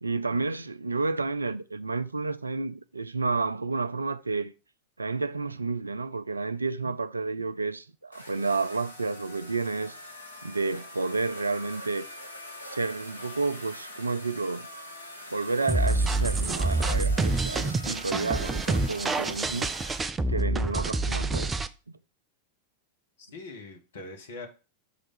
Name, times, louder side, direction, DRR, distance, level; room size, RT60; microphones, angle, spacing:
voice 1, 0.0-4.5 5.0-12.1 12.6-14.7 15.3-19.7 20.3-21.5, right 3 dB, 80° right, 0.4 m, -31 dB
sound 1, 8.1-20.1, left 1 dB, 85° left, 0.9 m, -44 dB
sound 2, 15.7-21.7, right 2 dB, 15° right, 0.4 m, -27 dB
voice 2, 23.2-24.5, left 3 dB, 60° left, 1.3 m, -42 dB
5.8 x 3.3 x 5.7 m
figure-of-eight pair, 90°, 0 cm